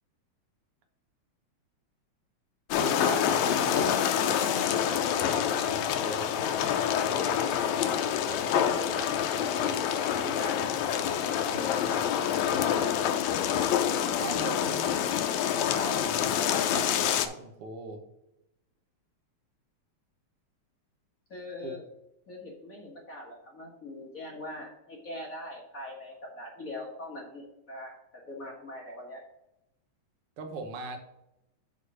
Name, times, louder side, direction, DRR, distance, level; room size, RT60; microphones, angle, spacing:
sound 1, 2.7-17.3, left 9 dB, 80° left, 1.8 m, -27 dB
voice 1, 2.8-4.8 5.2-6.5 11.4-12.0 14.2-14.9 15.5-18.0 21.6-21.8 30.4-31.0, right 3 dB, 60° right, 4 dB, 1.8 m, -40 dB
voice 2, 8.2-9.1 9.3-10.6 11.4-11.8 21.3-21.8 22.3-28.0 28.3-29.2, left 2 dB, 40° left, -2 dB, 1.3 m, -41 dB
6.5 x 4.8 x 6.1 m, 0.86 s
omnidirectional pair, 3.4 m